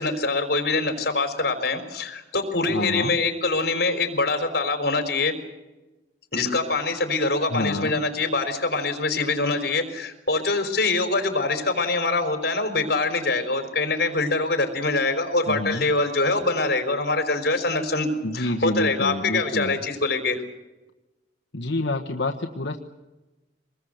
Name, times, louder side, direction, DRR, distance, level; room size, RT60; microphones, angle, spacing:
voice 1, 0.0-5.3 6.3-18.1 18.3-20.4, left 3 dB, 60° left, 6 dB, 4.5 m, -24 dB
voice 2, 2.7-3.2 7.5-8.0 15.5-15.8 18.2-19.8 21.5-22.8, left 2 dB, 80° left, 2 dB, 1.4 m, -27 dB
25.5 x 21.0 x 8.1 m, 1.1 s
head